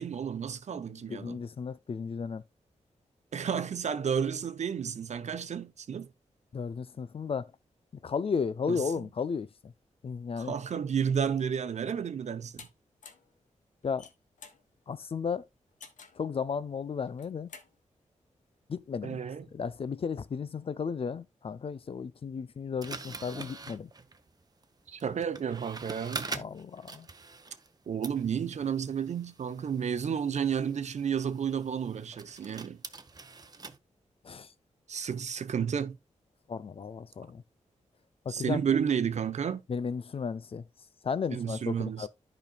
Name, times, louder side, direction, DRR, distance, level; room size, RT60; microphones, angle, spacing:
voice 1, 0.0-1.4 3.3-6.1 8.7-9.1 10.4-12.7 19.0-19.5 24.9-26.3 27.9-32.8 34.9-36.0 38.3-39.6 41.3-42.1, right 7 dB, 65° right, 0.9 m, -31 dB
voice 2, 1.1-2.4 6.5-7.5 8.0-9.7 10.0-10.5 13.8-14.1 14.9-15.4 16.2-17.5 18.7-19.2 19.5-23.9 26.3-27.1 34.2-34.5 36.5-37.4 38.3-38.6 39.7-40.6 41.0-42.1, left 6 dB, 50° left, 0.5 m, -34 dB
sound 1, 12.6-12.7 13.0-13.3 13.8-14.6 15.8-16.2 17.1-17.7, left 5 dB, 85° left, 1.3 m, -49 dB
sound 2, 22.8-27.8 28.0-33.8, right 4 dB, 30° right, 0.8 m, -44 dB
13.5 x 5.2 x 2.3 m
wide cardioid pair, 115°, 13 cm